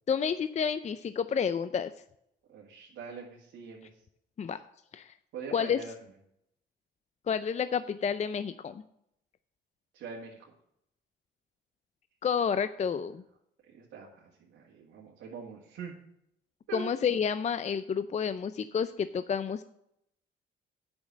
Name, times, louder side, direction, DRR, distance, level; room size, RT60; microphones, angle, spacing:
voice 1, 0.1-1.9 4.4-4.6 4.9-5.1 5.5-5.8 7.3-8.8 12.2-13.2 16.7-19.6, left 7 dB, 35° left, 12 dB, 0.5 m, -30 dB
voice 2, 2.5-3.9 5.3-5.9 9.9-10.4 13.7-15.9 16.7-16.9, right 5 dB, 80° right, -3 dB, 2.0 m, -43 dB
8.7 x 6.1 x 7.4 m, 0.76 s
cardioid pair, 90°, 20 cm